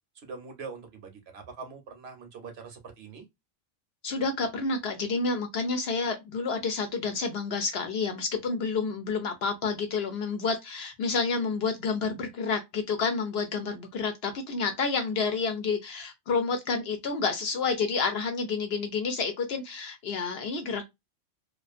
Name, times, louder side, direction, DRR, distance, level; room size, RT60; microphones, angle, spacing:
voice 1, 0.2-3.3, right 4 dB, 60° right, 0.9 m, -43 dB
voice 2, 4.0-20.8, left 4 dB, 65° left, 0.7 m, -29 dB
2.4 x 2.4 x 2.3 m
omnidirectional pair, 1.3 m